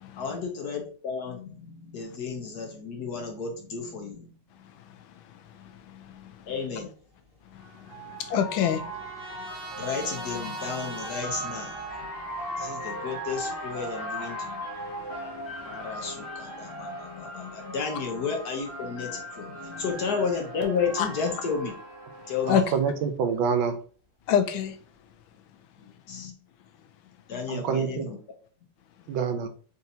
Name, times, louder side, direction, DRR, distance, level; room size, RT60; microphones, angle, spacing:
voice 1, 0.2-4.6 6.5-6.9 9.7-12.2 12.6-14.9 15.6-21.7 22.3-22.7 25.8-26.3 27.3-28.2 29.0-29.1, left 5 dB, 60° left, 1.2 m, -33 dB
sound 1, 5.7-5.8 7.2-22.8, equal, 35° left, 0.9 m, -38 dB
voice 2, 5.9-6.3 7.5-7.6 8.2-8.9 21.0-21.1 22.5-22.6 24.3-24.8, left 8 dB, 80° left, 1.3 m, -25 dB
Trumpet, 7.6-12.3, right 3 dB, 45° right, 1.5 m, -43 dB
voice 3, 22.5-23.8 27.5-28.1 29.1-29.5, right 6 dB, 80° right, 1.3 m, -27 dB
4.1 x 3.7 x 2.7 m
omnidirectional pair, 2.2 m